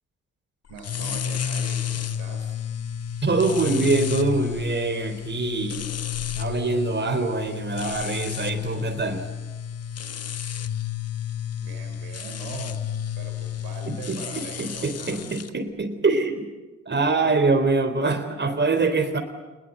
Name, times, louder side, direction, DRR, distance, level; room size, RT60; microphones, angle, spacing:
voice 1, 0.7-2.5 11.6-12.9 13.1-15.5 17.2-17.4, right 5 dB, 70° right, 4 dB, 3.5 m, -41 dB
sound 1, 0.8-15.5, left 9 dB, 40° left, 1.3 m, -31 dB
voice 2, 3.2-5.9 6.4-9.3 13.9-16.5 16.9-19.2, right 3 dB, 30° right, 6 dB, 4.0 m, -24 dB
28.5 x 21.0 x 8.0 m, 1.2 s
hypercardioid pair, 40°, 37 cm